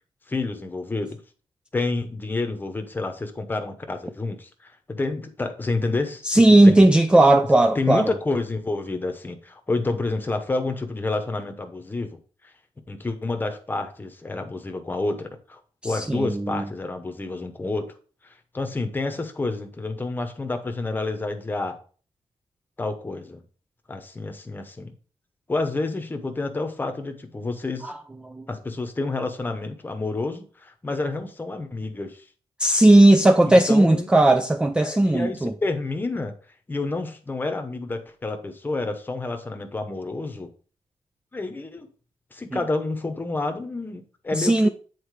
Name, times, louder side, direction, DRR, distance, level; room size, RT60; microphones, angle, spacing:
voice 1, 0.3-1.2 1.7-6.9 7.7-12.2 12.4-12.5 12.9-17.9 18.2-21.8 22.8-23.4 23.9-24.9 25.5-27.9 28.5-32.2 33.5-34.1 34.8-36.3 36.7-40.5 41.3-41.9 42.3-44.7, left 3 dB, 20° left, 0.9 m, -29 dB
voice 2, 6.2-8.1 15.8-16.7 27.8-28.0 28.3-28.5 32.6-35.5 42.5-42.6 44.3-44.7, right 1 dB, 10° right, 0.3 m, -17 dB
8.5 x 4.3 x 4.7 m
wide cardioid pair, 180°, 11 cm